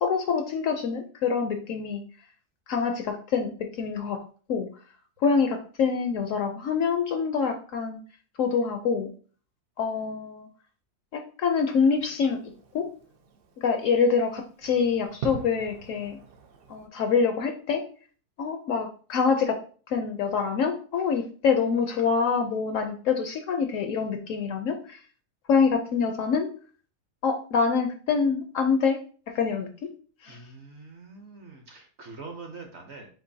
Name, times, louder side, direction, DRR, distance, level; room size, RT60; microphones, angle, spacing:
voice 1, 0.0-2.0 2.7-3.5 3.8-4.2 4.5-4.7 5.2-8.0 8.4-9.1 9.8-10.5 11.1-12.4 12.7-12.9 13.6-16.2 16.7-17.8 18.4-19.6 19.9-25.0 25.5-26.5 27.2-29.0 29.3-29.7 30.2-30.4, left 5 dB, 70° left, 5 dB, 0.8 m, -25 dB
Fireworks, 11.5-16.9, right 6 dB, 80° right, 0.5 m, -43 dB
voice 2, 30.3-33.1, right 3 dB, 55° right, 3 dB, 0.8 m, -44 dB
7.4 x 2.6 x 2.7 m, 0.42 s
omnidirectional pair, 1.7 m